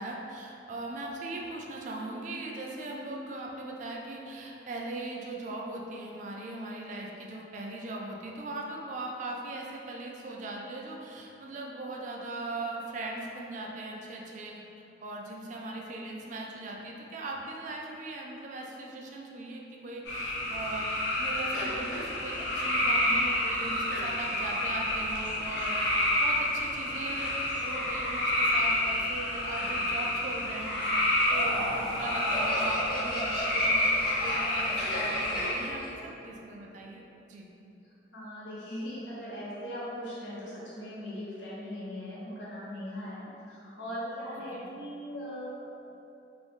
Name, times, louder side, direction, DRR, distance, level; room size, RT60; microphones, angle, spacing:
voice 1, 0.0-14.6 15.0-35.8 36.2-37.0 37.3-37.5 44.5-44.7, right 2 dB, 40° right, -1 dB, 0.3 m, -39 dB
sound 1, 20.0-35.5, left 1 dB, 60° left, 0.7 m, -29 dB
Laughter, 30.8-36.0, equal, 25° left, 0.7 m, -36 dB
voice 2, 38.1-45.6, equal, 75° left, -9 dB, 1.0 m, -39 dB
2.6 x 2.5 x 3.5 m, 2.9 s
head